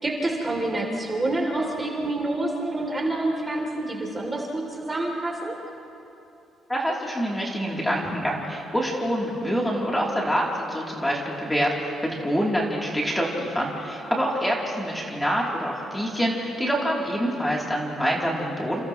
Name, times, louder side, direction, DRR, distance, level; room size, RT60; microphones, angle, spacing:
voice 1, 0.0-5.5, right 2 dB, 20° right, 0 dB, 3.0 m, -27 dB
voice 2, 6.7-18.8, equal, 10° left, -3 dB, 3.3 m, -26 dB
29.5 x 29.0 x 3.1 m, 2.7 s
cardioid pair, 130°, 0 cm